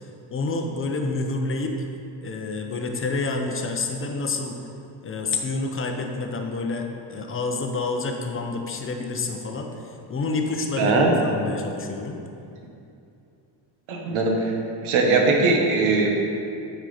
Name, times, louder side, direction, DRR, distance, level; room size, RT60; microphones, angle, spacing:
voice 1, 0.3-1.7 2.2-4.6 5.0-12.2, left 3 dB, 25° left, 3 dB, 0.7 m, -28 dB
voice 2, 10.8-11.1 13.9-14.5 14.8-16.1, right 3 dB, 70° right, 1 dB, 1.4 m, -20 dB
8.9 x 4.6 x 5.0 m, 2.6 s
cardioid pair, 130°, 50 cm